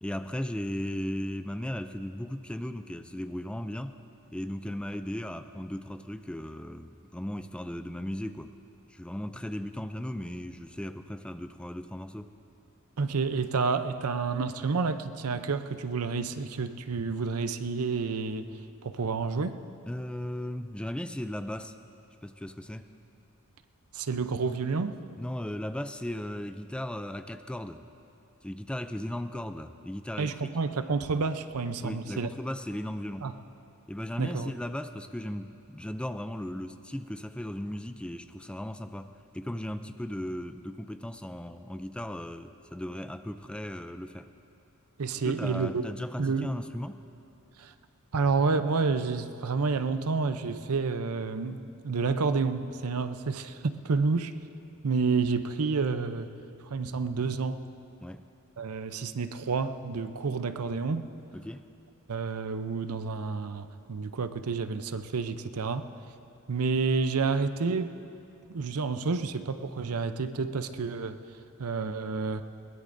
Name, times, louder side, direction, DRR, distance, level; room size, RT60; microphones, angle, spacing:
voice 1, 0.0-3.9 4.3-8.5 8.9-12.3 19.9-21.7 22.2-22.9 25.2-27.8 28.4-30.5 31.8-33.3 33.9-44.3 45.2-47.0 58.0-58.2 61.3-61.6, left 1 dB, 5° left, 9 dB, 0.4 m, -36 dB
voice 2, 13.0-18.6 18.8-19.6 23.9-25.0 30.2-32.3 33.2-33.3 34.2-34.5 45.0-45.9 46.2-46.5 47.6-47.7 48.1-54.3 54.8-56.3 56.6-57.6 58.6-61.1 62.1-65.8 66.5-67.9 68.5-71.2 71.6-72.4, right 4 dB, 85° right, 10 dB, 0.6 m, -29 dB
21.5 x 19.5 x 2.6 m, 2.7 s
head